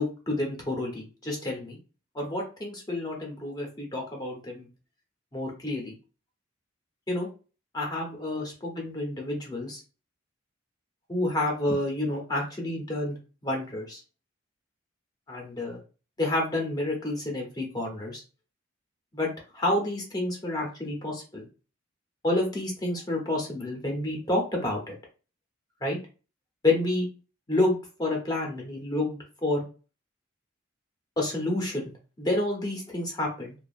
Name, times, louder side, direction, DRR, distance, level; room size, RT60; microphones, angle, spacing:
voice 1, 0.0-1.8 2.1-4.7 5.3-5.9 7.1-7.3 7.7-9.8 11.1-13.2 13.4-14.0 15.3-15.8 16.2-18.2 19.1-21.5 22.2-25.0 25.8-26.0 26.6-27.1 27.5-29.6 31.2-31.9 32.2-33.5, left 1 dB, 20° left, 0 dB, 0.8 m, -29 dB
2.6 x 2.3 x 2.4 m, 0.34 s
head